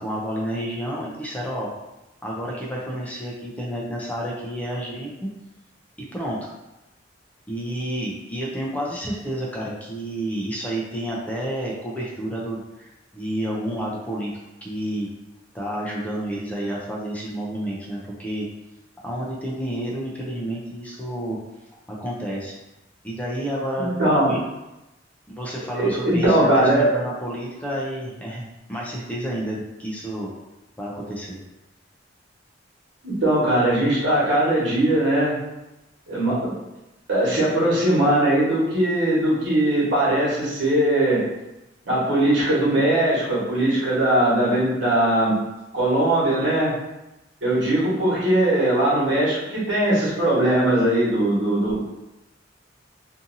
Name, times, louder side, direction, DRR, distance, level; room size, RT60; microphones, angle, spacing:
voice 1, 0.0-1.7 2.2-5.3 6.0-6.5 7.5-14.3 14.6-15.1 15.5-18.5 19.0-21.4 21.9-22.6 23.0-23.9 24.3-24.4 25.3-30.3 30.8-31.4, right 1 dB, 10° left, -4 dB, 0.4 m, -30 dB
voice 2, 23.8-24.3 25.7-26.9 33.0-35.3 36.1-36.5 37.1-41.2 41.8-45.4 45.7-46.7 47.4-51.8, right 1 dB, 75° right, -8 dB, 1.3 m, -20 dB
2.6 x 2.6 x 2.6 m, 0.97 s
head